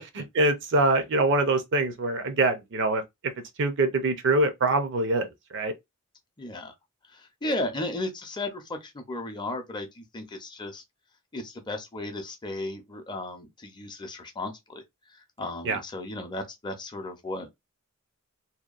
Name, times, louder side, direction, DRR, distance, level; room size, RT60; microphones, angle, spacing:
voice 1, 0.4-3.0 3.6-5.3 5.5-5.7 15.7-15.8, right 2 dB, 55° right, 0.6 m, -24 dB
voice 2, 6.4-6.7 7.1-10.8 11.3-14.8 15.1-17.5, left 2 dB, 20° left, 0.6 m, -35 dB
2.7 x 2.2 x 2.4 m
head